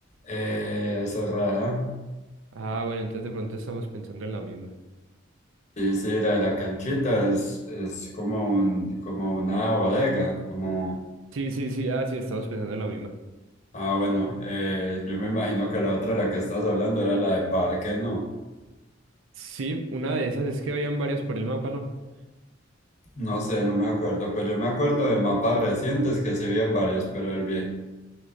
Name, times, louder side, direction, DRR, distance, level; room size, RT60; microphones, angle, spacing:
voice 1, 0.2-1.9 5.8-11.0 13.7-18.3 23.2-27.6, equal, 35° left, -1 dB, 0.9 m, -26 dB
voice 2, 2.5-4.7 11.3-13.1 19.4-21.8, right 2 dB, 80° right, 5 dB, 0.5 m, -30 dB
5.9 x 3.2 x 2.6 m, 1.1 s
head